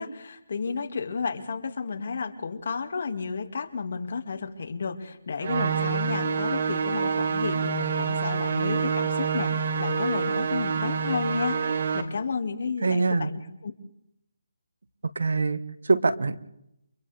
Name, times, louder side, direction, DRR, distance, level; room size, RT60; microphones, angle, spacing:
voice 1, 0.0-13.7, left 5 dB, 55° left, 6 dB, 2.3 m, -32 dB
sound 1, 5.4-12.0, right 6 dB, 50° right, 2.4 m, -27 dB
voice 2, 12.8-13.3 15.1-16.4, right 3 dB, 80° right, 13 dB, 1.3 m, -24 dB
29.5 x 25.5 x 3.6 m, 0.80 s
hypercardioid pair, 170°, 0 cm